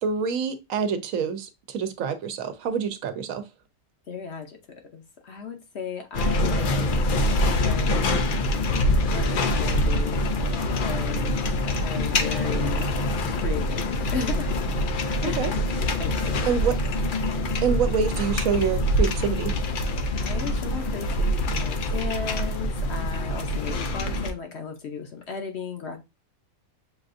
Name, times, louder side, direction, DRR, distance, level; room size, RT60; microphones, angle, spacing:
voice 1, 0.0-3.4 15.2-15.5 16.5-16.7 17.6-19.5, right 6 dB, 75° right, 1.0 m, -26 dB
voice 2, 4.1-4.6 4.9-7.2 7.4-8.3 9.1-10.5 10.8-11.5 11.8-12.9 13.3-14.6 15.2-15.5 16.0-16.4 20.2-26.0, left 5 dB, 55° left, 0.9 m, -35 dB
sound 1, 6.1-24.3, left 1 dB, 75° left, 0.4 m, -25 dB
6.7 x 2.5 x 2.5 m
omnidirectional pair, 1.5 m